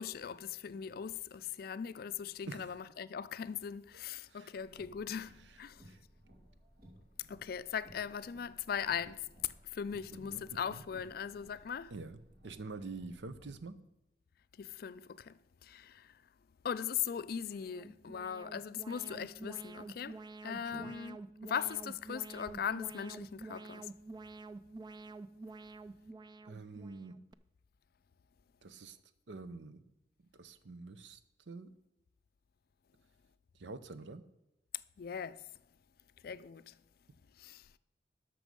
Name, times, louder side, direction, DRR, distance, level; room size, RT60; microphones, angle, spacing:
voice 1, 0.0-5.7 7.3-9.2 9.8-11.9 14.6-15.0 15.3-15.4 15.7-15.9 16.6-20.2 20.4-21.2 21.4-23.8 35.0-35.4 36.2-36.6 37.4-37.6, left 7 dB, 55° left, 0.4 m, -39 dB
Car, 4.5-13.5, equal, 60° right, 2.6 m, -60 dB
voice 2, 10.1-10.8 11.9-13.8 20.7-20.9 26.4-27.2 28.6-29.0 29.3-29.9 30.3-31.2 31.5-31.7 33.6-34.2, right 3 dB, 80° right, 0.7 m, -47 dB
Alarm, 17.5-27.3, right 3 dB, 25° right, 0.3 m, -49 dB
12.5 x 6.1 x 5.3 m
head